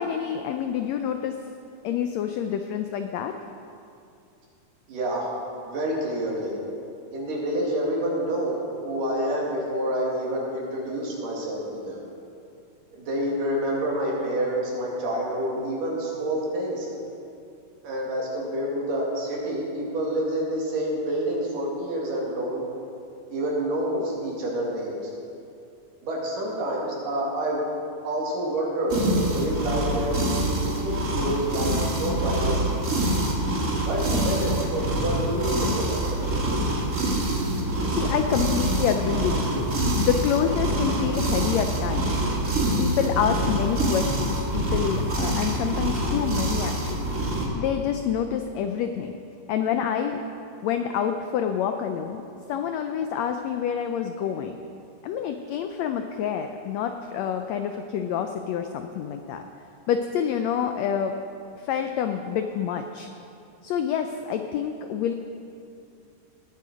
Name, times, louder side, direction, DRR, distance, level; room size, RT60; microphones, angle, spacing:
voice 1, 0.0-1.4 1.8-3.3 37.9-42.3 42.8-47.1 47.5-49.1 49.5-50.2 50.6-54.6 55.0-59.4 59.9-61.1 61.6-63.1 63.6-65.1, left 8 dB, 85° left, 6 dB, 1.5 m, -27 dB
voice 2, 4.9-5.3 5.6-6.6 7.1-12.0 12.9-16.9 17.8-22.6 23.3-25.1 26.0-27.6 28.0-32.7 33.8-36.3, right 1 dB, 80° right, -4 dB, 4.1 m, -28 dB
sound 1, 28.9-47.5, right 1 dB, 30° right, 1.5 m, -25 dB
19.5 x 8.5 x 5.1 m, 2.6 s
omnidirectional pair, 3.7 m